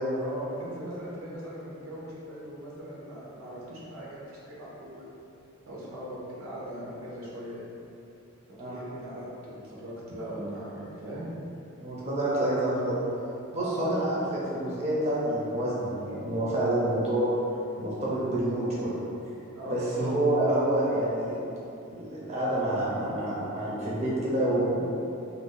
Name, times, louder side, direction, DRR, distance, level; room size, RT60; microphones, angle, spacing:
voice 1, 0.2-5.1 5.7-7.6 8.6-11.3 13.5-14.0 19.5-20.0, right 1 dB, 90° right, -6 dB, 0.7 m, -40 dB
voice 2, 11.8-13.1 13.5-17.3 17.8-18.9 19.7-21.4 21.9-24.8, right 1 dB, 35° right, -7 dB, 0.5 m, -28 dB
2.5 x 2.2 x 3.7 m, 2.8 s
head